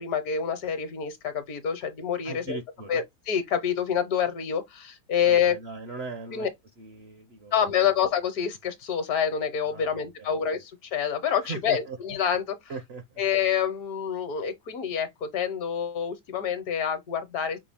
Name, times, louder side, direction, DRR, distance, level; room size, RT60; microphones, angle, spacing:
voice 1, 0.0-2.6 2.9-5.5 6.3-6.5 7.5-12.6 13.2-17.6, left 8 dB, 65° left, 1.4 m, -27 dB
voice 2, 2.2-3.0 5.2-6.5 6.8-7.9 9.6-10.4 11.4-12.0 12.7-13.2, right 4 dB, 55° right, 0.8 m, -39 dB
5.9 x 2.3 x 3.4 m
omnidirectional pair, 1.7 m